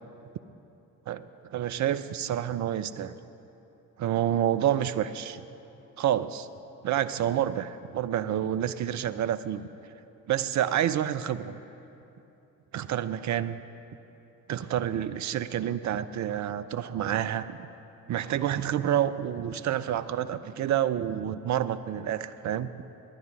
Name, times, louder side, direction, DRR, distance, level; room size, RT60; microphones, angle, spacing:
voice 1, 1.5-3.1 4.0-5.4 6.0-6.5 6.8-9.7 10.3-11.5 12.7-13.6 14.5-17.6 18.1-22.7, right 10 dB, 40° right, 13 dB, 0.6 m, -28 dB
17.5 x 11.0 x 4.1 m, 2.9 s
hypercardioid pair, 50°, 48 cm